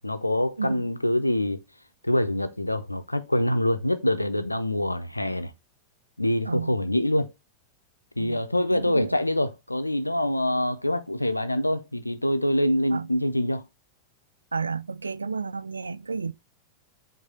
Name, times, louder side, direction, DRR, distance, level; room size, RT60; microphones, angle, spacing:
voice 1, 0.0-1.6 2.0-5.5 6.2-7.3 8.2-13.6, left 1 dB, 85° left, 0.6 m, -25 dB
voice 2, 0.6-0.9 6.5-6.8 8.2-8.4 8.7-9.2 12.9-13.1 14.5-16.3, right 5 dB, 75° right, 0.3 m, -31 dB
7.7 x 2.7 x 5.3 m
figure-of-eight pair, 90°, 0 cm